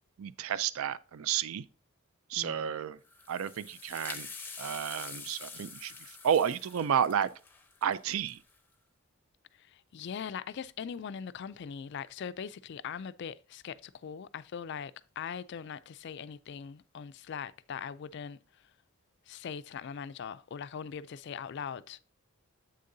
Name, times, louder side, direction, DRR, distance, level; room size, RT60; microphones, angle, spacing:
voice 1, 0.2-1.6 2.3-3.0 3.3-4.3 4.6-7.3 7.8-8.4, right 8 dB, 65° right, 0.4 m, -31 dB
voice 2, 2.4-2.7 9.5-18.7 19.3-22.0, left 7 dB, 50° left, 0.3 m, -41 dB
sound 1, 3.0-8.6, left 4 dB, 10° left, 0.6 m, -46 dB
7.8 x 6.5 x 2.6 m
head